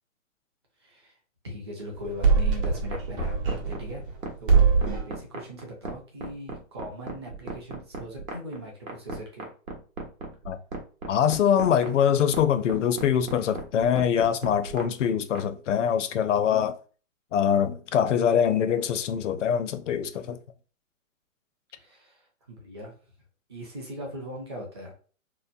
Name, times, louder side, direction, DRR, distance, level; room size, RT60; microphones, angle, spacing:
voice 1, 0.8-1.1 1.4-9.5 15.7-15.8 21.8-22.9 23.5-24.9, equal, 20° right, 0.4 m, -40 dB
sound 1, 1.9-4.2 4.5-5.2, right 5 dB, 40° right, 0.9 m, -23 dB
sound 2, 2.6-15.5, right 3 dB, 85° right, 1.0 m, -36 dB
voice 2, 11.1-16.8 17.3-20.4, left 8 dB, 65° left, 0.5 m, -24 dB
2.8 x 2.1 x 2.5 m
hypercardioid pair, 145°, 41 cm